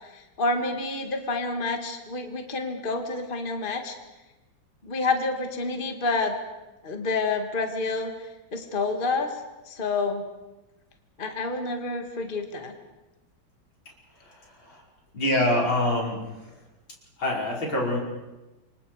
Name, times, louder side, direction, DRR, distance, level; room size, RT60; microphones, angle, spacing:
voice 1, 0.1-4.0 4.8-6.3 6.8-9.4 9.7-10.2 11.2-12.7, left 3 dB, 30° left, 5 dB, 1.9 m, -28 dB
voice 2, 14.2-14.8 15.1-16.2 17.2-18.0, left 1 dB, 85° left, -3 dB, 6.2 m, -25 dB
28.0 x 24.5 x 4.9 m, 1.1 s
omnidirectional pair, 2.1 m